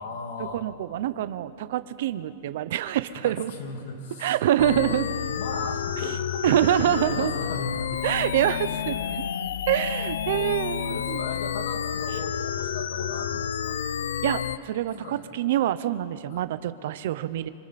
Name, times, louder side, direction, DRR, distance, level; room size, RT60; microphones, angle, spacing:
voice 1, 0.0-0.6 3.1-4.4 5.2-8.1 10.2-13.8 15.0-15.3 16.3-16.4, left 3 dB, 55° left, 3 dB, 2.5 m, -37 dB
voice 2, 0.5-3.5 4.2-5.1 6.0-6.1 6.4-7.3 8.0-9.2 9.7-11.2 14.2-17.5, right 12 dB, 50° right, 13 dB, 0.7 m, -26 dB
sound 1, 4.6-14.6, left 8 dB, 85° left, 0.5 m, -30 dB
25.5 x 25.5 x 4.2 m, 2.6 s
supercardioid pair, 180°, 0 cm